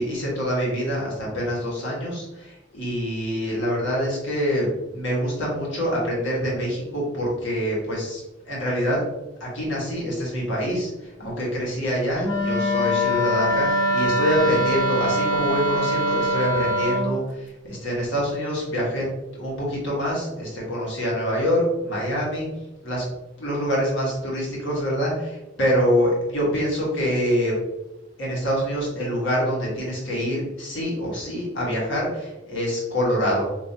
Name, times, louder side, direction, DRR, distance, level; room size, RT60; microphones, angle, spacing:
voice 1, 0.0-9.0 9.4-19.1 19.4-22.5 22.8-23.0 23.4-27.6 28.2-33.5, equal, 80° left, -4 dB, 1.3 m, -25 dB
Wind instrument woodwind instrument, 12.2-17.1, equal, 20° left, 0.7 m, -23 dB
4.7 x 2.6 x 2.7 m, 0.97 s
head